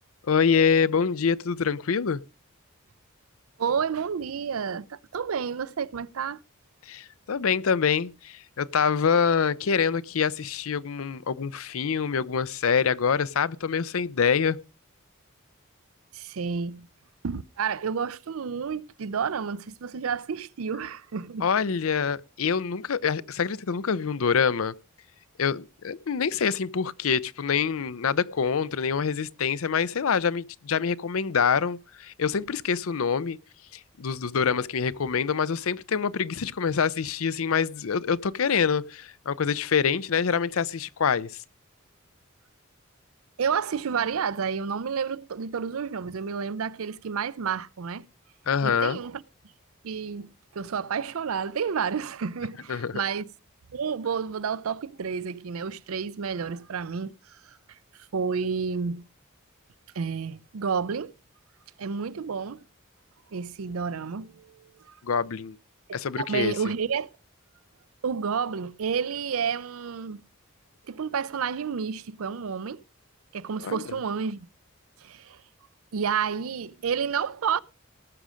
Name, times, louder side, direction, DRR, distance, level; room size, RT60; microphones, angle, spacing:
voice 1, 0.3-2.2 6.9-14.6 21.4-24.7 25.4-33.4 34.0-41.4 48.5-49.0 52.7-52.9 65.0-65.6 65.9-66.5 73.6-73.8, left 6 dB, 85° left, 0.6 m, -25 dB
voice 2, 3.6-6.4 16.1-16.9 17.2-21.5 43.4-48.1 48.6-49.2 49.8-53.3 53.7-59.0 59.9-61.1 61.8-62.6 63.3-65.0 66.2-67.1 68.0-70.2 70.9-72.8 73.3-74.5 75.0-75.4 75.9-77.6, right 6 dB, 85° right, 0.5 m, -30 dB
18.5 x 6.3 x 5.1 m
head